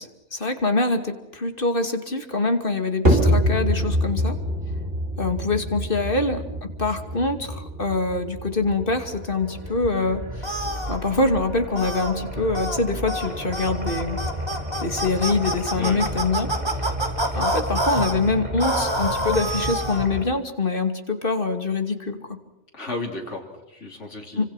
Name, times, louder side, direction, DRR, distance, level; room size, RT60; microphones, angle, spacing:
voice 1, 0.0-4.4 5.2-10.5 10.9-14.2 14.8-16.5 17.3-22.4 24.4-24.5, left 3 dB, 50° left, 7 dB, 2.7 m, -25 dB
sound 1, 3.1-19.5, equal, 55° right, 4.3 m, -28 dB
sound 2, 8.7-20.2, right 1 dB, 35° right, 4.8 m, -33 dB
sound 3, 10.4-11.0 11.8-12.1 12.5-12.8 13.1-13.3 13.5-18.1 18.6-20.1, right 1 dB, 20° right, 3.4 m, -27 dB
voice 2, 22.7-24.4, left 2 dB, 90° left, 1 dB, 3.6 m, -33 dB
29.0 x 26.0 x 5.9 m, 0.92 s
omnidirectional pair, 1.2 m